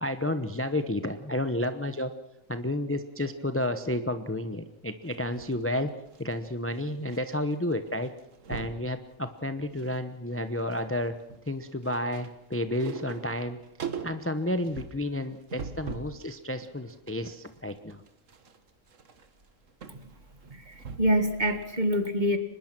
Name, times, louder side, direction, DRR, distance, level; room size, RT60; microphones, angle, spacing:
voice 1, 0.0-2.1 2.5-5.9 6.2-8.1 8.5-11.1 11.5-13.6 14.0-18.0, left 1 dB, 10° left, 9 dB, 0.8 m, -31 dB
sound 1, 5.1-7.2 7.5-7.7 8.0-8.8 9.4-10.0 10.3-16.2 16.6-21.3 21.6-21.7, right 6 dB, 75° right, 1.8 m, -42 dB
voice 2, 20.5-22.4, equal, 35° right, 8 dB, 2.0 m, -26 dB
24.5 x 21.0 x 6.1 m, 0.83 s
omnidirectional pair, 1.3 m